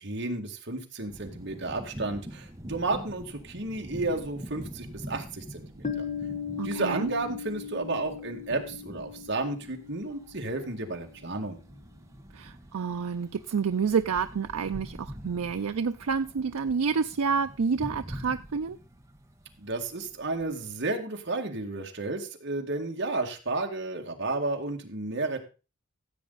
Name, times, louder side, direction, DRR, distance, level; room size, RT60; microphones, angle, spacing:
voice 1, 0.0-6.1 6.5-11.6 19.6-25.4, right 2 dB, 55° right, 3 dB, 2.0 m, -32 dB
sound 1, 1.1-20.8, equal, 15° right, 1.1 m, -45 dB
Piano, 5.8-11.2, left 7 dB, 30° left, 1.1 m, -38 dB
voice 2, 6.6-7.1 12.3-18.8, right 5 dB, 85° right, 8 dB, 0.5 m, -29 dB
15.5 x 8.0 x 4.0 m, 0.32 s
head